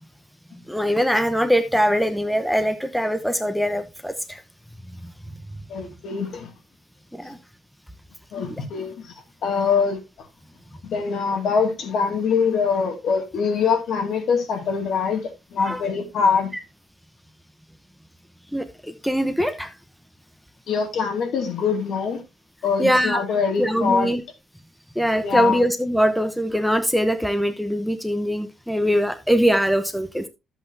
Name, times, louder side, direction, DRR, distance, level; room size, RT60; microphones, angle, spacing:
voice 1, 0.7-4.4 7.1-7.4 8.5-8.6 15.7-15.8 18.5-19.7 22.8-23.2 23.6-24.2 25.0-30.3, equal, ahead, 0.8 m, -22 dB
voice 2, 5.7-6.5 7.2-7.3 8.3-10.3 10.8-16.5 20.7-22.2 22.6-24.1 25.2-25.6, left 5 dB, 65° left, 2.3 m, -23 dB
11.0 x 8.0 x 2.7 m
cardioid pair, 120°, 0 cm